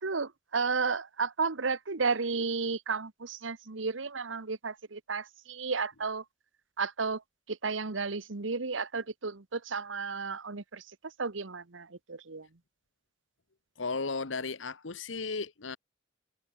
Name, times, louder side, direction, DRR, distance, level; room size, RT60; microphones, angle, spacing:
voice 1, 0.0-6.2 6.8-7.2 7.5-10.8 11.2-12.5, right 4 dB, 90° right, 1.2 m, -33 dB
voice 2, 13.8-15.8, left 4 dB, 85° left, 1.3 m, -35 dB
head